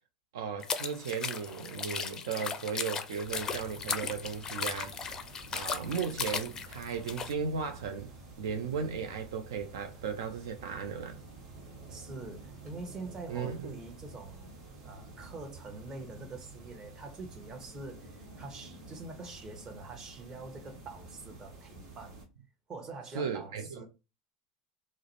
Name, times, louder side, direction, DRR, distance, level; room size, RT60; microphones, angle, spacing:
voice 1, 0.3-5.0 5.5-8.1 8.4-11.2 13.3-13.7 23.1-23.8, right 6 dB, 75° right, 0.3 m, -36 dB
sound 1, 0.6-7.3, left 6 dB, 30° left, 0.4 m, -37 dB
sound 2, 3.2-22.2, right 3 dB, 60° right, 1.1 m, -50 dB
voice 2, 11.9-14.5 14.8-22.2 22.7-23.9, right 3 dB, 30° right, 0.9 m, -45 dB
2.4 x 2.0 x 2.9 m
hypercardioid pair, 85°, 2 cm